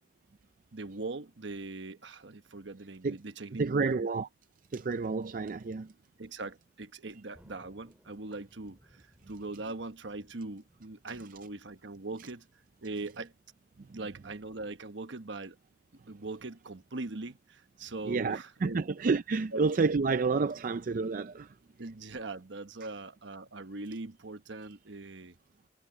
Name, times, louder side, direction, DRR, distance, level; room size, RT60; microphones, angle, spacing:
voice 1, 0.7-4.0 6.2-12.5 12.8-13.3 13.9-15.6 15.9-18.9 19.5-19.6 21.8-25.3, right 3 dB, 75° right, 1.2 m, -41 dB
voice 2, 3.6-4.3 4.7-5.9 18.1-21.5, right 4 dB, 45° right, 0.4 m, -29 dB
Thunder, 7.3-14.2, equal, 10° right, 4.6 m, -65 dB
head